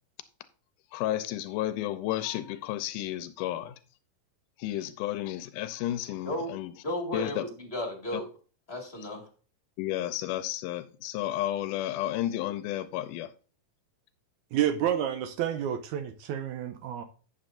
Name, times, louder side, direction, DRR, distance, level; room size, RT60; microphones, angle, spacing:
voice 1, 0.9-3.8 4.6-6.7 7.1-7.4 8.1-8.2 9.8-13.3, left 13 dB, 90° left, 2.2 m, -32 dB
voice 2, 6.8-8.3 8.7-9.3, left 1 dB, 25° left, 1.6 m, -34 dB
voice 3, 14.5-17.0, right 10 dB, 75° right, 1.9 m, -29 dB
11.5 x 8.1 x 2.6 m
omnidirectional pair, 3.7 m